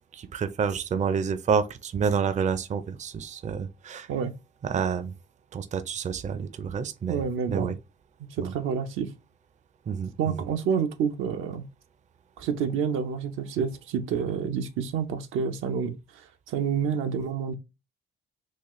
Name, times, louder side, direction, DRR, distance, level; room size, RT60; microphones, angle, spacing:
voice 1, 0.1-4.1 4.6-5.1 5.5-7.2 7.5-7.7 8.4-8.5 9.9-10.1, right 6 dB, 35° right, 0.5 m, -28 dB
voice 2, 7.1-7.7 8.4-9.1 10.2-11.7 12.4-17.5, right 7 dB, 90° right, 0.7 m, -28 dB
4.0 x 2.4 x 3.0 m
cardioid pair, 90°, 20 cm